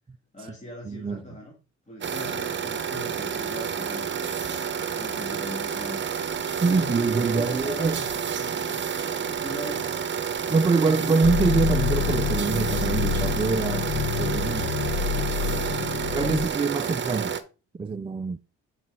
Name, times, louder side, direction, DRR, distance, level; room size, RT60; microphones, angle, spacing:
voice 1, 0.3-1.5 1.9-4.4 4.9-6.1 6.6-9.9 10.8-11.2 14.2-16.1, left 1 dB, 25° left, 2.3 m, -41 dB
voice 2, 0.8-1.2 6.6-8.0 10.5-14.7 16.1-17.3 17.7-18.4, right 4 dB, 20° right, 0.4 m, -25 dB
sound 1, 2.0-17.4, right 7 dB, 40° right, 0.9 m, -30 dB
sound 2, 11.2-16.5, left 7 dB, 50° left, 0.8 m, -27 dB
7.8 x 5.2 x 3.6 m
cardioid pair, 90°, 30 cm